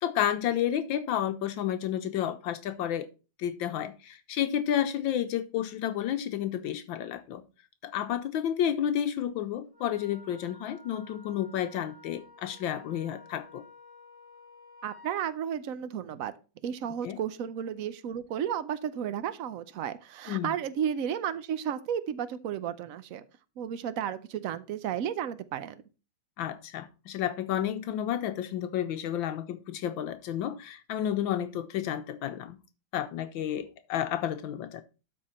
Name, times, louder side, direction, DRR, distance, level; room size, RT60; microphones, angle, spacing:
voice 1, 0.0-3.1 3.4-7.4 7.8-13.6 17.0-17.2 20.3-20.5 26.4-32.6 32.9-34.8, left 10 dB, 75° left, 10 dB, 1.3 m, -31 dB
Wind instrument woodwind instrument, 9.7-15.2, left 2 dB, 40° left, 3.0 m, -53 dB
voice 2, 14.8-16.3 16.6-23.3 23.6-25.8, right 9 dB, 80° right, 14 dB, 0.7 m, -33 dB
12.5 x 4.6 x 4.2 m, 0.32 s
omnidirectional pair, 2.2 m